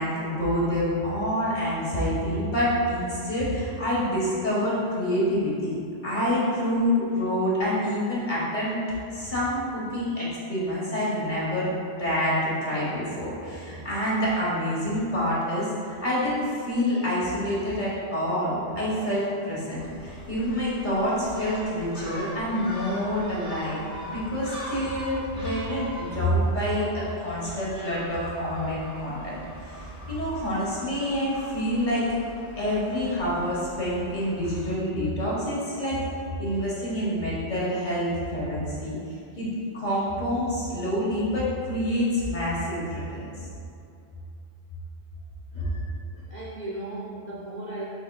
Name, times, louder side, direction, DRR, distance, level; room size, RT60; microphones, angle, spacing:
voice 1, 0.0-5.8 6.0-8.8 9.1-32.0 32.6-36.0 36.4-39.0 39.4-39.5 39.7-43.3 45.5-45.7, equal, 45° left, -8 dB, 1.2 m, -27 dB
Gull seagull, 19.8-34.8, equal, 5° right, 0.5 m, -42 dB
voice 2, 29.8-30.2 45.5-45.9 46.1-47.9, right 2 dB, 55° right, -7 dB, 0.5 m, -38 dB
5.4 x 3.4 x 2.2 m, 2.6 s
omnidirectional pair, 1.2 m